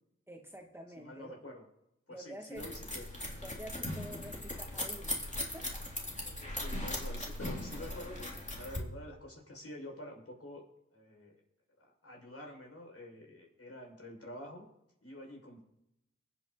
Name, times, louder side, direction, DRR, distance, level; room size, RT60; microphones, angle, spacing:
voice 1, 0.3-1.4 2.1-2.7 3.4-5.9, right 1 dB, 10° right, 1 dB, 2.2 m, -49 dB
voice 2, 0.9-1.6 2.1-3.1 6.3-8.3 8.6-10.6 10.9-11.4 11.8-14.6 15.0-15.6, left 1 dB, 55° left, 0 dB, 6.3 m, -48 dB
sound 1, 2.6-8.8, left 1 dB, 25° left, 3.6 m, -39 dB
23.0 x 8.7 x 4.1 m, 0.82 s
cardioid pair, 50°, 29 cm